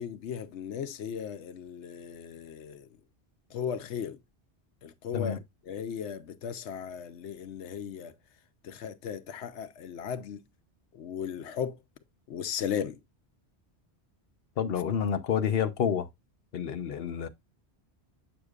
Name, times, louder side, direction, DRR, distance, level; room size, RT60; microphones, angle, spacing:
voice 1, 0.0-2.9 3.5-4.2 4.8-5.4 5.7-8.1 8.6-10.5 10.9-11.8 12.3-13.0, left 8 dB, 90° left, 1.0 m, -36 dB
voice 2, 14.6-16.1 16.5-17.3, left 8 dB, 65° left, 1.0 m, -29 dB
8.0 x 6.5 x 2.4 m
omnidirectional pair, 1.1 m